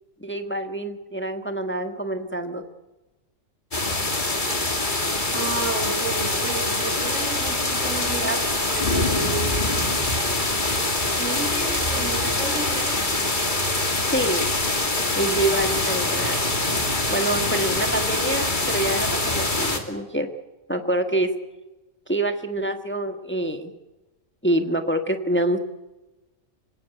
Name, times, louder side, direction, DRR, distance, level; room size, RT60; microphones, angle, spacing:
voice 1, 0.2-2.6 7.8-7.9 8.2-8.5 14.1-14.5 15.2-16.4 17.1-20.3 20.7-21.3 22.1-23.7 24.4-25.6, right 1 dB, 10° left, 6 dB, 1.4 m, -26 dB
sound 1, 3.7-19.8, left 2 dB, 40° left, 2.7 m, -24 dB
voice 2, 5.3-9.9 11.2-13.0, right 3 dB, 75° right, 5 dB, 4.9 m, -32 dB
26.0 x 17.0 x 8.2 m, 1.1 s
omnidirectional pair, 1.3 m